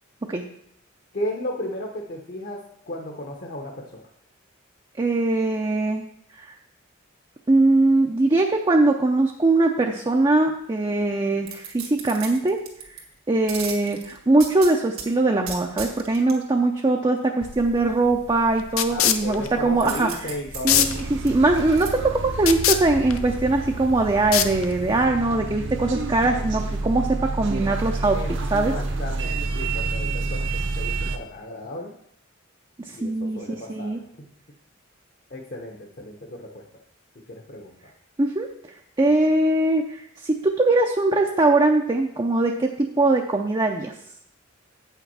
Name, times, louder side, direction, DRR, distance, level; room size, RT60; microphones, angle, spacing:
voice 1, 1.1-4.0 18.9-21.0 28.1-28.3 28.7-31.9 32.9-34.0 35.3-36.6 37.3-37.9, left 1 dB, 45° left, 1 dB, 1.0 m, -34 dB
voice 2, 5.0-6.0 6.4-6.5 7.5-12.6 13.3-20.1 20.6-28.2 28.5-28.7 32.8-34.0 38.2-38.5 39.0-43.9, right 2 dB, 20° right, 2 dB, 0.5 m, -21 dB
sound 1, 11.4-13.0 13.5-15.1 15.5-16.4 19.8-21.9 22.4-22.5, right 7 dB, 75° right, 1.7 m, -36 dB
sound 2, 17.4-25.1, left 10 dB, 75° left, 0.6 m, -27 dB
sound 3, 20.7-31.2, right 3 dB, 60° right, 0.9 m, -29 dB
8.1 x 5.9 x 5.5 m, 0.72 s
head